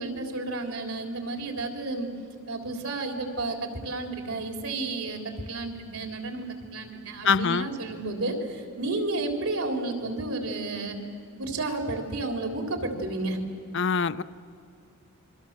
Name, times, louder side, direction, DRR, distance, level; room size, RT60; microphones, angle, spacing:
voice 1, 0.0-2.1 2.5-6.5 6.7-11.0 11.4-13.4, right 2 dB, 80° right, 4 dB, 3.6 m, -31 dB
voice 2, 7.2-7.7 13.7-14.2, left 5 dB, 55° left, 14 dB, 0.6 m, -24 dB
29.0 x 24.0 x 7.5 m, 2.3 s
head